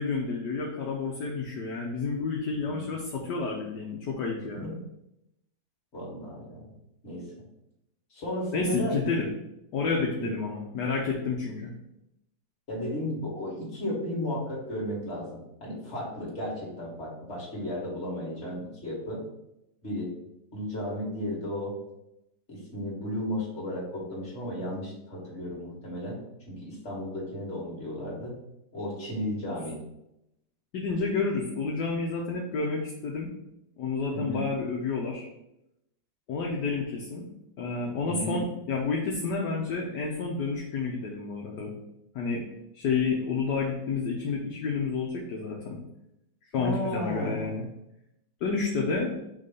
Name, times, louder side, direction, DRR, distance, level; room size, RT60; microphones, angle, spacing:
voice 1, 0.0-4.7 8.5-9.3 9.7-11.7 30.7-33.3 33.8-35.3 36.3-37.3 37.6-41.7 42.1-42.4 42.7-45.8 46.5-47.7 48.4-49.1, left 4 dB, 65° left, -1 dB, 1.3 m, -30 dB
voice 2, 5.9-6.7 7.0-7.3 8.1-9.0 10.2-10.3 12.7-19.2 19.8-20.1 20.5-21.8 22.5-26.2 26.5-28.4 28.7-29.8 34.1-34.5 38.1-38.4 46.6-47.5, equal, 35° left, -5 dB, 2.3 m, -34 dB
5.3 x 3.3 x 5.3 m, 0.84 s
omnidirectional pair, 2.1 m